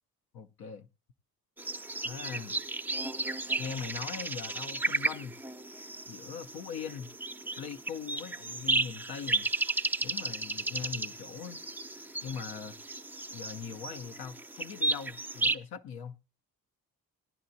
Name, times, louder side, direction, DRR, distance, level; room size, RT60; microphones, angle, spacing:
voice 1, 0.3-0.9 2.0-2.6 3.6-5.4 6.0-7.1 7.6-9.5 10.0-11.6 12.2-12.8 13.3-16.2, left 7 dB, 70° left, 0.9 m, -41 dB
sound 1, 1.6-15.6, right 2 dB, 5° right, 0.6 m, -34 dB
16.5 x 10.5 x 2.7 m
supercardioid pair, 65°, 39 cm